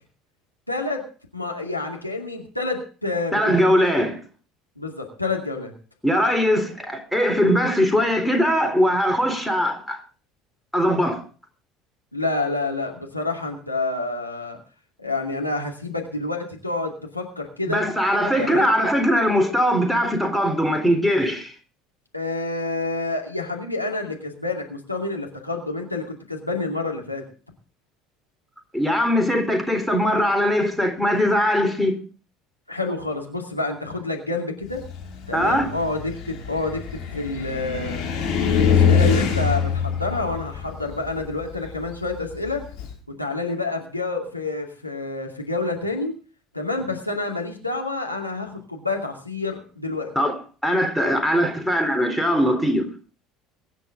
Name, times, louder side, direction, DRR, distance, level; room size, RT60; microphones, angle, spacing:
voice 1, 0.7-1.1 1.3-3.6 4.8-5.7 12.1-14.6 15.0-17.8 18.4-18.7 22.1-27.2 32.7-34.9 35.3-38.0 38.5-42.6 43.2-46.2 46.5-50.1, left 3 dB, 90° left, 2.5 m, -28 dB
voice 2, 3.3-4.2 6.0-10.0 10.7-11.2 17.7-21.5 28.7-32.0 35.3-35.7 50.2-50.4 50.6-52.9, equal, ahead, 3.7 m, -21 dB
Car, 34.7-42.9, left 6 dB, 50° left, 5.4 m, -24 dB
23.0 x 10.0 x 3.8 m
figure-of-eight pair, 65°, 0 cm